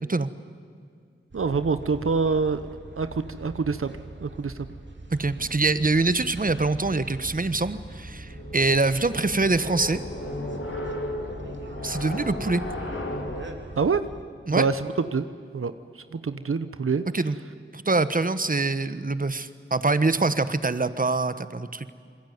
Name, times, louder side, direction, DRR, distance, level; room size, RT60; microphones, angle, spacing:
sound 1, 1.3-14.2, right 2 dB, 60° right, 2.8 m, -42 dB
voice 1, 1.3-3.9 4.2-4.7 13.8-14.1 14.5-15.3 15.5-17.0, right 5 dB, 90° right, 11 dB, 1.0 m, -26 dB
voice 2, 5.1-10.0 11.8-12.6 14.5-14.7 17.1-17.3 17.7-21.9, right 3 dB, 40° right, 13 dB, 1.2 m, -24 dB
sound 2, 7.9-13.4, left 1 dB, 75° left, 3.7 m, -35 dB
27.5 x 21.5 x 9.4 m, 2.3 s
cardioid pair, 40°, 21 cm